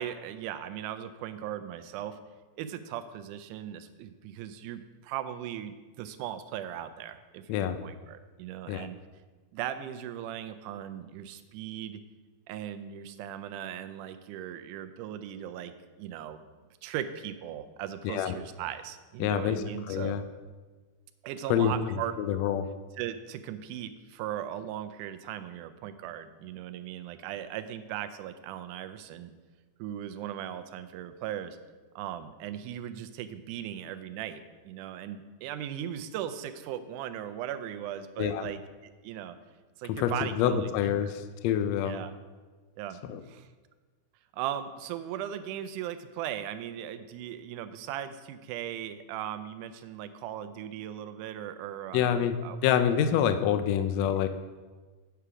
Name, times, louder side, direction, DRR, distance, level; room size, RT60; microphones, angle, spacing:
voice 1, 0.0-2.2 2.6-9.0 9.5-12.0 12.5-15.7 16.0-16.4 16.8-20.2 21.2-22.1 23.0-29.3 29.8-31.6 32.0-39.4 39.8-40.7 41.0-41.1 41.8-42.1 42.8-43.0 43.3-43.5 44.3-52.6 53.8-54.1, right 10 dB, 85° right, 10 dB, 2.0 m, -38 dB
voice 2, 19.2-20.2 21.5-22.7 38.2-38.5 39.9-42.0 43.0-43.2 51.9-52.4 52.6-54.3, left 9 dB, 85° left, 10 dB, 1.5 m, -27 dB
8.1 x 5.8 x 4.8 m, 1.3 s
omnidirectional pair, 3.6 m